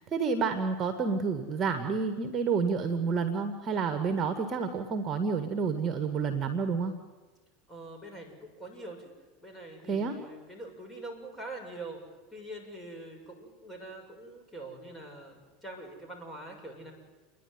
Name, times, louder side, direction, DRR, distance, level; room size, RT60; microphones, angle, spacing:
voice 1, 0.0-6.9 9.9-10.2, right 5 dB, 35° right, 8 dB, 1.9 m, -29 dB
voice 2, 7.7-9.1 9.4-12.0 12.3-16.9, right 2 dB, 10° left, 1 dB, 6.9 m, -44 dB
29.5 x 11.0 x 9.5 m, 1.2 s
hypercardioid pair, 95°, 0 cm